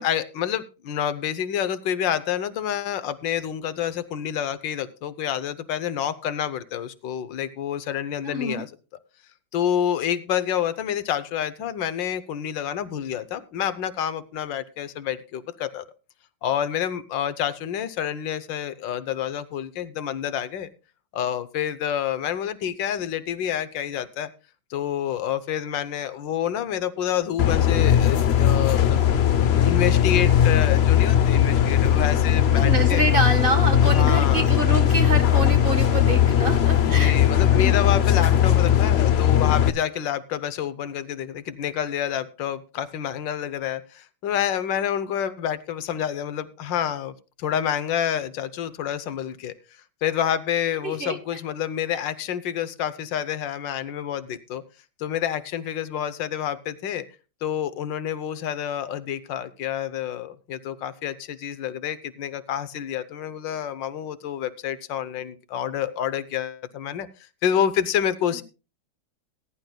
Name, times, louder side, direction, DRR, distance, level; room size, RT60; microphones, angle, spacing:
voice 1, 0.0-8.7 9.5-15.8 16.4-20.7 21.1-24.3 24.7-29.0 29.5-33.0 33.8-34.5 36.9-49.6 50.0-54.6 55.0-57.1 57.4-67.1 67.4-68.4, left 9 dB, 85° left, 14 dB, 1.5 m, -28 dB
voice 2, 8.2-8.6 32.5-37.2 37.5-37.8 50.8-51.2 51.9-52.0, right 2 dB, 35° right, 6 dB, 1.3 m, -26 dB
sound 1, 27.4-39.7, left 10 dB, 60° left, 0.7 m, -19 dB
19.5 x 10.5 x 2.2 m, 0.31 s
omnidirectional pair, 1.9 m